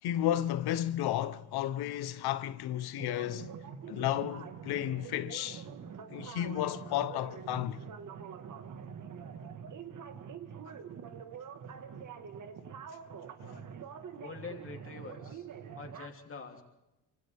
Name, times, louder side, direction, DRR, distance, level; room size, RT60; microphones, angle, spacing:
voice 1, 0.0-3.5 3.9-5.6 6.1-7.8 13.4-13.5, left 12 dB, 85° left, 1.2 m, -33 dB
sound 1, 3.0-16.1, right 7 dB, 55° right, 1.8 m, -45 dB
voice 2, 14.1-15.5 15.7-16.6, left 4 dB, 35° left, 3.3 m, -45 dB
27.5 x 26.0 x 3.6 m
cardioid pair, 115°, 37 cm